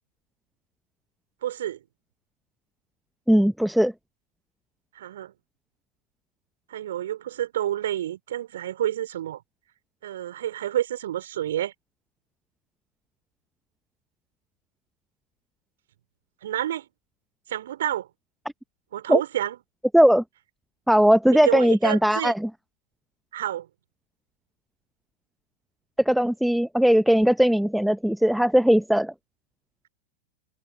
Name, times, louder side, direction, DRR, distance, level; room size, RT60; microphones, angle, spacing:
voice 1, 1.4-1.8 4.9-5.3 6.7-9.4 10.0-11.7 16.4-16.9 17.5-18.1 18.9-19.6 21.3-22.3 23.3-23.7, right 12 dB, 60° right, 4.4 m, -29 dB
voice 2, 3.3-3.9 19.1-19.2 19.9-20.2 20.9-22.5 26.1-29.1, equal, ahead, 0.7 m, -19 dB
figure-of-eight pair, 90°, 0 cm